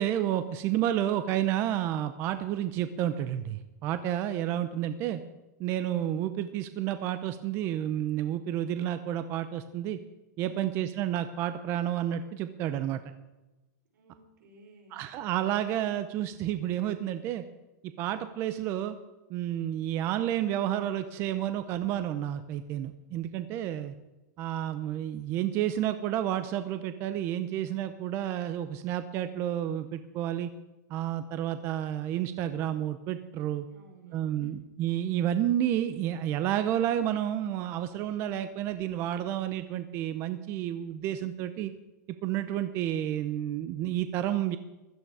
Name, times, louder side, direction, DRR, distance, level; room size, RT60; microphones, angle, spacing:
voice 1, 0.0-5.2 5.6-10.0 10.4-13.0 14.9-17.4 18.0-19.0 19.3-23.9 24.4-30.5 30.9-33.7 34.1-41.7 42.2-44.6, right 11 dB, 25° right, 11 dB, 0.6 m, -30 dB
voice 2, 13.9-15.0 33.7-34.5, right 3 dB, 85° right, 2 dB, 5.4 m, -53 dB
15.5 x 13.5 x 4.8 m, 1.1 s
supercardioid pair, 170°, 10 cm